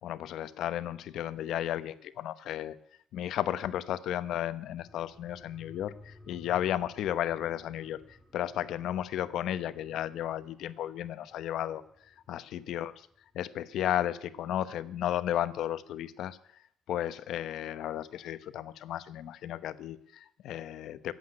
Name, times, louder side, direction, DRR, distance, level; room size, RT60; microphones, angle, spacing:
voice 1, 0.0-2.8 3.1-11.8 12.3-12.9 13.3-16.4 16.9-21.1, left 11 dB, 80° left, 14 dB, 0.9 m, -34 dB
sound 1, 4.6-13.7 14.1-14.2, left 2 dB, ahead, 7.7 m, -57 dB
16.5 x 7.9 x 9.8 m, 0.71 s
cardioid pair, 90°, 0 cm